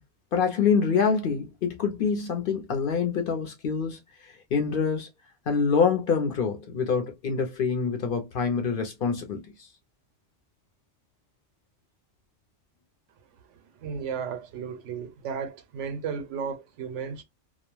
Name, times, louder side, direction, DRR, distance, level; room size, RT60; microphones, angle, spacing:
voice 1, 0.3-4.0 4.3-5.1 5.5-9.5, left 5 dB, 55° left, 0.7 m, -26 dB
voice 2, 13.5-17.2, right 6 dB, 90° right, 0.9 m, -34 dB
2.3 x 2.1 x 3.0 m
omnidirectional pair, 1.2 m